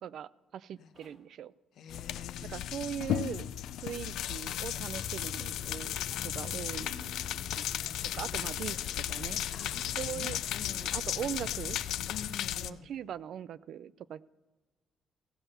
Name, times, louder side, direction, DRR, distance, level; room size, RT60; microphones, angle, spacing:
voice 1, 0.0-1.5 2.5-3.5 3.8-7.1 7.6-7.7 8.1-9.4 10.0-10.4 10.8-11.8 12.6-14.2, right 9 dB, 60° right, 19 dB, 0.3 m, -40 dB
sound 1, 0.9-1.2 3.2-3.5 6.0-6.2, left 2 dB, 20° left, 3.3 m, -61 dB
voice 2, 1.7-2.7 4.7-4.9 6.2-7.4 8.3-8.7 9.5-11.0 12.1-12.9, left 7 dB, 70° left, 7 dB, 1.1 m, -48 dB
sound 2, 1.9-12.7, left 12 dB, 85° left, 0.4 m, -35 dB
sound 3, 4.9-12.3, equal, 5° right, 1.2 m, -52 dB
16.5 x 7.1 x 5.6 m, 1.3 s
cardioid pair, 145°, 0 cm